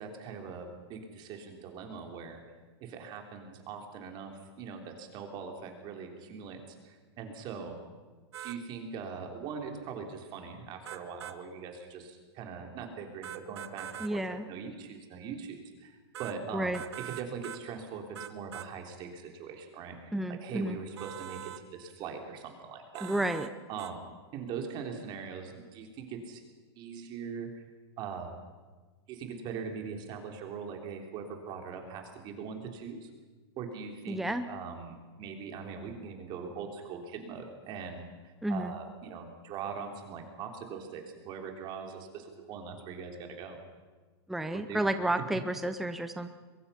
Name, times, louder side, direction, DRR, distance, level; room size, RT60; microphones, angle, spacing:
voice 1, 0.0-2.4 2.8-7.8 8.4-23.1 23.7-26.4 26.8-27.6 28.0-28.3 29.1-33.1 33.6-43.6 44.5-44.9, right 6 dB, 35° right, 3 dB, 3.5 m, -41 dB
sound 1, 8.3-8.6 10.8-11.4 13.2-14.1 16.1-16.4 16.7-17.6 18.1-18.7 21.0-21.6 22.9-23.5 23.8-23.9, right 11 dB, 80° right, 1.3 m, -42 dB
voice 2, 14.0-14.5 16.5-16.8 20.1-20.8 23.0-23.5 34.1-34.5 38.4-38.7 44.3-46.3, right 1 dB, ahead, 9 dB, 0.6 m, -31 dB
22.5 x 22.5 x 5.8 m, 1.4 s
supercardioid pair, 150°, 14 cm